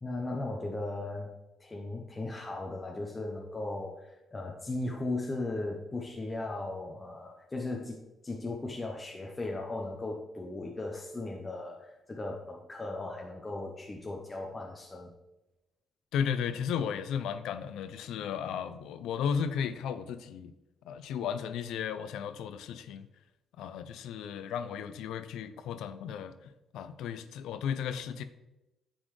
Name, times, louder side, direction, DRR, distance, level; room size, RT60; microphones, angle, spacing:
voice 1, 0.0-1.3 1.6-15.1, left 2 dB, 25° left, 0 dB, 0.8 m, -37 dB
voice 2, 16.1-20.5 20.8-23.1 23.6-26.3 26.7-28.2, left 7 dB, 85° left, 11 dB, 0.5 m, -34 dB
9.7 x 4.1 x 3.2 m, 0.96 s
cardioid pair, 90°, 0 cm